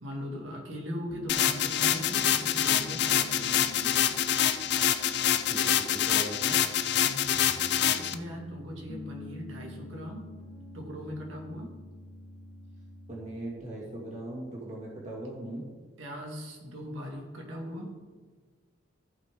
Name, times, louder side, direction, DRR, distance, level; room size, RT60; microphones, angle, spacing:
voice 1, 0.0-4.1 7.0-10.2 10.7-11.7 16.0-17.9, equal, 90° right, -1 dB, 2.2 m, -40 dB
Piano, 1.1-13.6, left 1 dB, 80° left, 2.1 m, -47 dB
sound 1, 1.3-8.1, left 10 dB, 60° left, 0.5 m, -26 dB
voice 2, 5.3-6.6 13.1-15.6, right 1 dB, 35° right, -5 dB, 2.3 m, -39 dB
15.0 x 5.8 x 3.8 m, 1.4 s
head